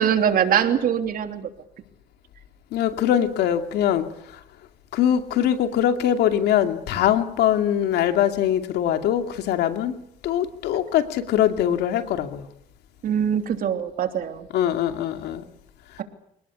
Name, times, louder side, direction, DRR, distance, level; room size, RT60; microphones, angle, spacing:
voice 1, 0.0-1.5 13.0-14.5, right 8 dB, 60° right, 3.1 m, -22 dB
voice 2, 2.7-4.4 4.9-9.9 10.2-12.5 14.5-15.4, left 10 dB, 75° left, 2.6 m, -22 dB
27.0 x 19.0 x 8.4 m
cardioid pair, 110°, 17 cm